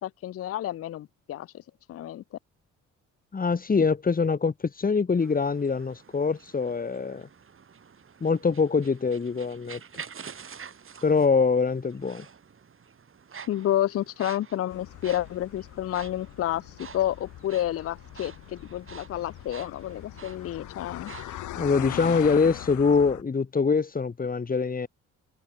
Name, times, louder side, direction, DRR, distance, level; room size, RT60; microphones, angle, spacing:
voice 1, 0.0-1.5 1.9-2.2 13.5-21.1, left 12 dB, 50° left, 0.5 m, -30 dB
voice 2, 3.3-7.3 8.2-9.8 11.0-12.3 21.5-24.9, left 5 dB, 30° left, 2.1 m, -24 dB
sound 1, 5.1-22.8, right 6 dB, 45° right, 6.7 m, -48 dB
sound 2, 14.7-23.2, left 14 dB, 75° left, 1.2 m, -41 dB
cardioid pair, 90°, 30 cm